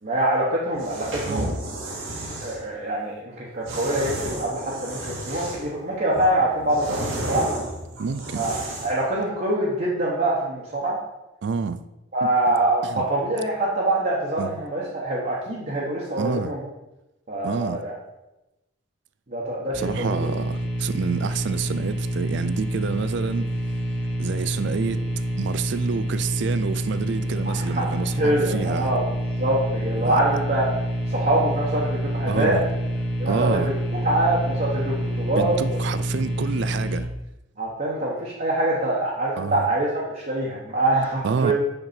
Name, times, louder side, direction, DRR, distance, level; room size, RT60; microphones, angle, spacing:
voice 1, 0.0-1.7 2.4-7.5 8.3-8.5 8.8-11.0 12.1-16.7 17.3-17.9 19.3-20.3 27.7-29.1 29.4-30.6 31.1-32.6 33.2-33.6 33.9-35.8 37.6-41.5, right 1 dB, 45° right, 1.2 m, -24 dB
sound 1, 0.7-2.6 3.7-5.7 6.1-9.0, right 1 dB, 85° right, 2.0 m, -32 dB
voice 2, 8.0-8.5 11.4-11.8 12.2-12.3 12.8-13.0 14.4-14.5 16.2-16.5 17.4-17.8 19.7-23.5 24.2-25.1 25.4-28.9 30.0-30.2 30.7-30.8 32.3-32.7 33.3-33.7 35.4-37.1 39.4-39.7 41.2-41.5, right 5 dB, 60° right, 0.4 m, -28 dB
sound 2, 19.7-37.0, equal, 5° left, 1.1 m, -27 dB
6.7 x 5.7 x 4.3 m
head